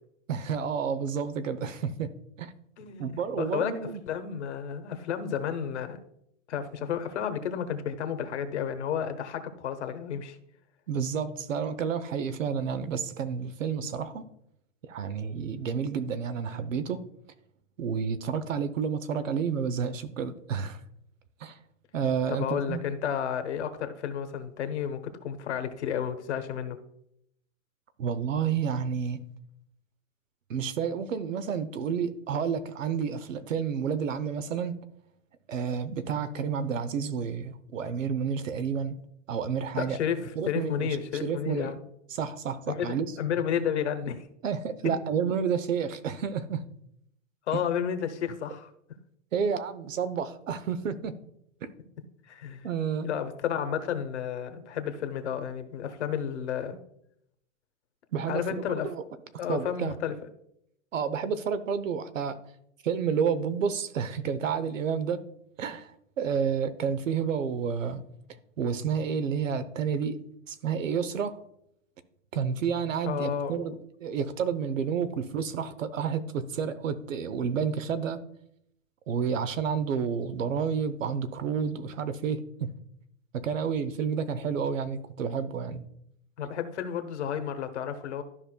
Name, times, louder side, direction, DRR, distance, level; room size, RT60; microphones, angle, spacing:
voice 1, 0.3-2.1 2.4-2.5 3.0-4.0 10.9-14.3 14.8-17.0 17.8-20.8 21.4-21.6 21.9-22.8 28.0-29.2 30.5-34.8 35.5-39.0 39.3-40.0 40.4-41.7 42.1-43.1 44.4-46.6 49.3-51.1 51.6-51.7 52.6-53.1 58.1-59.0 59.5-60.0 60.9-62.4 62.8-65.2 65.6-65.9 66.2-68.0 68.6-70.2 70.5-71.4 72.3-78.2 79.1-82.7 83.4-85.8, right 6 dB, 85° right, 13 dB, 0.9 m, -30 dB
voice 2, 2.8-3.7 4.1-6.0 6.5-10.4 22.3-26.8 39.8-41.8 42.7-44.3 47.5-48.7 52.3-52.7 53.0-56.8 58.3-58.9 59.4-60.1 73.1-73.8 86.4-88.2, left 8 dB, 60° left, 8 dB, 1.1 m, -32 dB
13.0 x 5.3 x 2.3 m, 0.75 s
hypercardioid pair, 170°, 38 cm